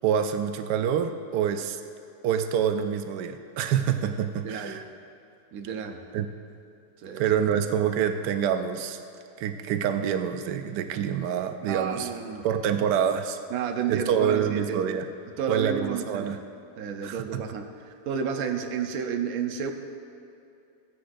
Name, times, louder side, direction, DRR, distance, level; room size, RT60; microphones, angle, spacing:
voice 1, 0.0-1.8 2.2-4.8 6.1-6.3 7.2-9.0 9.4-12.1 12.4-13.4 13.9-15.1 15.5-16.4 17.0-17.4, right 8 dB, 90° right, 8 dB, 1.2 m, -26 dB
voice 2, 4.4-4.8 5.5-6.0 7.0-7.3 11.6-12.5 13.5-14.9 15.4-16.4 16.8-19.7, right 7 dB, 65° right, 5 dB, 1.1 m, -31 dB
15.5 x 10.0 x 2.6 m, 2.7 s
omnidirectional pair, 1.7 m